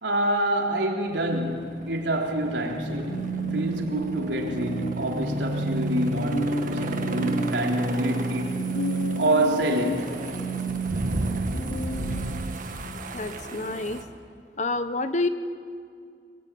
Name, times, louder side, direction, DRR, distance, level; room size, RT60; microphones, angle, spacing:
voice 1, 0.0-8.6 9.2-10.2, right 1 dB, 80° right, 4.0 m, -27 dB
sound 1, 1.1-14.0, right 1 dB, 45° right, 1.8 m, -36 dB
sound 2, 2.5-12.4, right 2 dB, 90° left, 5.7 m, -30 dB
voice 2, 13.1-14.0 14.6-15.3, left 2 dB, 40° left, 1.1 m, -28 dB
24.0 x 22.0 x 9.5 m
head